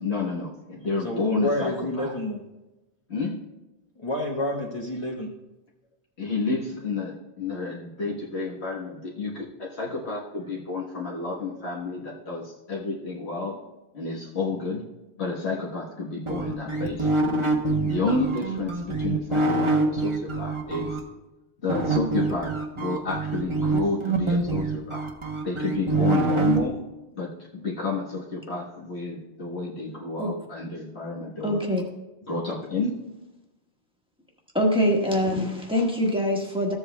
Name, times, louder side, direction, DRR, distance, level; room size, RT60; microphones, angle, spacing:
voice 1, 0.0-2.1 3.1-3.4 6.2-13.6 13.9-14.8 15.2-17.1 17.8-21.0 21.6-25.1 25.4-26.8 27.1-31.6 32.3-33.0, left 3 dB, 65° left, -4 dB, 1.6 m, -30 dB
voice 2, 1.0-2.4 4.0-5.3, left 1 dB, 30° left, -2 dB, 1.0 m, -29 dB
sound 1, 16.3-21.0 21.7-26.6, right 3 dB, 30° right, 0.9 m, -25 dB
voice 3, 31.4-31.8 34.5-36.7, equal, 5° right, -1 dB, 1.3 m, -24 dB
14.5 x 8.0 x 2.2 m, 1.0 s
omnidirectional pair, 1.2 m